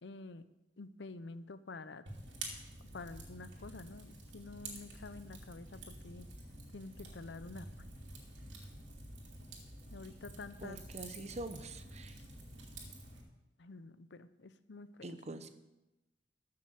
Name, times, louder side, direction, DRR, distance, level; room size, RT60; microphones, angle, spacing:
voice 1, 0.0-0.4 0.8-2.0 2.9-6.3 6.7-7.7 9.9-10.8 12.1-12.2 13.6-15.2, left 3 dB, 70° left, 13 dB, 0.6 m, -49 dB
Fire, 2.1-13.2, right 2 dB, 85° right, 2.7 m, -49 dB
voice 2, 10.6-12.2 15.0-15.5, right 2 dB, 40° right, 10 dB, 0.9 m, -45 dB
13.5 x 6.6 x 7.2 m, 0.98 s
head